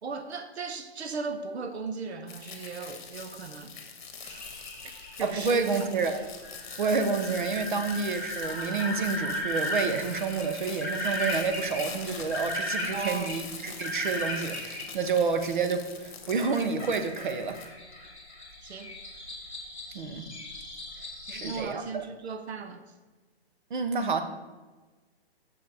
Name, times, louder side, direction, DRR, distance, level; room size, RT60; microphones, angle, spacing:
voice 1, 0.0-3.8 4.2-4.5 5.2-5.9 7.8-7.9 12.9-13.4 18.6-18.9 21.2-22.8, right 4 dB, 80° right, 8 dB, 0.9 m, -37 dB
sound 1, 2.3-17.6, left 5 dB, 50° left, 1.3 m, -44 dB
sound 2, 4.2-14.8 16.4-21.6, left 1 dB, 5° right, 0.6 m, -36 dB
voice 2, 5.2-6.3 6.8-17.6 19.9-20.3 21.3-22.0 23.7-24.2, right 4 dB, 50° right, 8 dB, 0.8 m, -29 dB
6.7 x 6.6 x 4.2 m, 1.2 s
hypercardioid pair, 175°, 32 cm